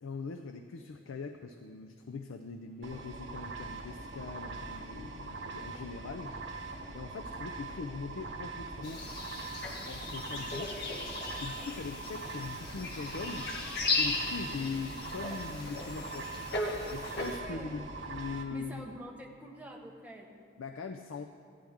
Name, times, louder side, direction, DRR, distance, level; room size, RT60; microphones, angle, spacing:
voice 1, 0.0-6.4 6.9-9.0 9.9-10.8 11.4-13.5 14.0-16.5 16.9-18.9 20.6-21.2, left 4 dB, 90° left, 6 dB, 0.5 m, -41 dB
sound 1, 2.8-18.4, right 3 dB, 65° right, 1.0 m, -42 dB
sound 2, 8.8-17.4, left 3 dB, 55° left, 1.3 m, -36 dB
voice 2, 17.4-17.7 18.5-20.6, right 1 dB, 5° right, -1 dB, 0.9 m, -46 dB
15.0 x 10.5 x 3.6 m, 2.2 s
head